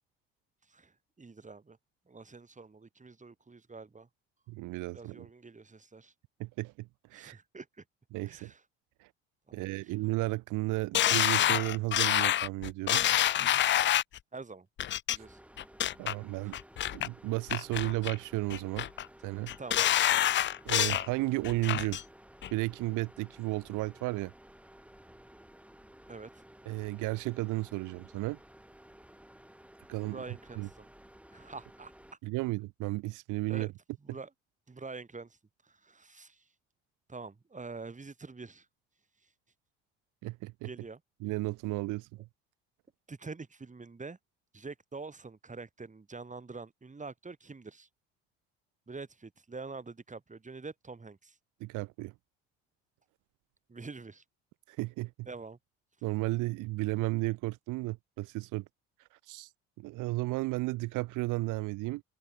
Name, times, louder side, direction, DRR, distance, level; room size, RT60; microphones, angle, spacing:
voice 1, 1.2-1.8 2.1-4.1 4.9-6.1 7.1-7.8 8.2-8.6 9.5-9.7 14.3-14.7 15.1-15.4 19.6-19.9 26.1-26.3 30.0-30.9 31.3-31.9 33.5-33.7 34.0-34.3 34.7-35.3 35.8-36.4 37.1-38.6 40.6-41.0 43.1-44.2 44.5-47.9 48.9-51.3 53.7-54.2 55.3-55.6, right 4 dB, 25° right, 6.1 m, -45 dB
voice 2, 4.5-5.3 6.4-7.4 8.1-8.5 9.0-9.1 9.5-13.0 15.1-15.2 16.0-16.6 16.9-18.9 19.2-19.5 20.7-22.0 22.5-24.3 26.7-28.4 29.9-30.2 30.6-30.7 32.2-33.7 40.2-40.7 41.2-42.1 51.6-52.1 54.7-55.1 56.0-58.6 59.1-59.5 59.8-62.0, right 21 dB, 75° right, 2.1 m, -33 dB
sound 1, 10.9-14.2 14.8-15.2 15.6-16.1 16.5-17.1 17.5-18.2 18.5-19.0 19.5-21.1 21.4-22.0 22.4-22.5, left 12 dB, 40° left, 0.4 m, -27 dB
sound 2, 15.2-32.1, right 1 dB, 5° right, 7.6 m, -55 dB
open air
supercardioid pair, 70°, 31 cm